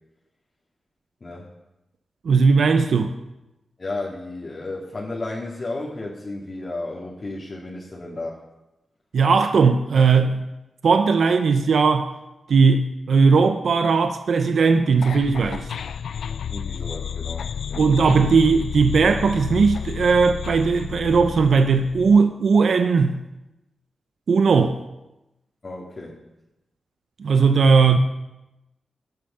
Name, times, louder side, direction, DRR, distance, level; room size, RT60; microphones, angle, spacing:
voice 1, 2.2-3.1 9.1-10.5 10.8-12.1 12.5-15.7 17.7-23.2 24.3-24.8 27.2-28.0, right 5 dB, 75° right, 0.7 m, -18 dB
voice 2, 3.8-8.4 16.5-18.2 25.6-26.2 27.6-27.7, left 2 dB, 45° left, 2.1 m, -33 dB
sound 1, 15.0-22.2, left 8 dB, 85° left, 0.4 m, -31 dB
18.0 x 6.5 x 5.6 m
cardioid pair, 65°, 0 cm